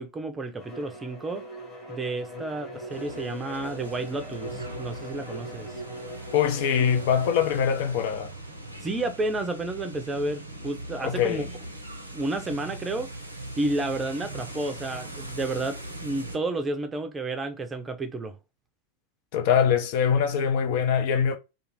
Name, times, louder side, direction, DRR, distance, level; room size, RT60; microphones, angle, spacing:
voice 1, 0.0-1.4 1.9-5.8 8.8-11.5 12.1-13.1 13.6-18.4, right 2 dB, 15° right, 0.5 m, -31 dB
Bowed string instrument, 0.6-8.0, equal, 15° left, 1.2 m, -40 dB
sound 1, 2.9-16.4, right 1 dB, 85° right, 0.6 m, -40 dB
voice 2, 6.3-8.3 11.0-11.5 19.3-21.4, left 7 dB, 50° left, 0.4 m, -23 dB
2.5 x 2.4 x 3.1 m
figure-of-eight pair, 90°, 0 cm